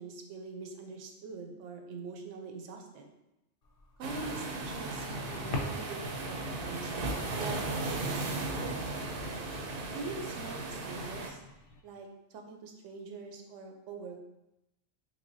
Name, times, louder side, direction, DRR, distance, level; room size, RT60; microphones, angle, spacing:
voice 1, 0.0-3.1 4.0-9.0 9.9-11.4 11.8-14.2, right 4 dB, 90° right, 3 dB, 0.9 m, -44 dB
sound 1, 3.6-11.8, left 3 dB, 60° left, 0.7 m, -46 dB
sound 2, 4.0-11.3, right 2 dB, 60° right, 0.7 m, -36 dB
3.6 x 3.2 x 2.6 m, 0.92 s
omnidirectional pair, 1.2 m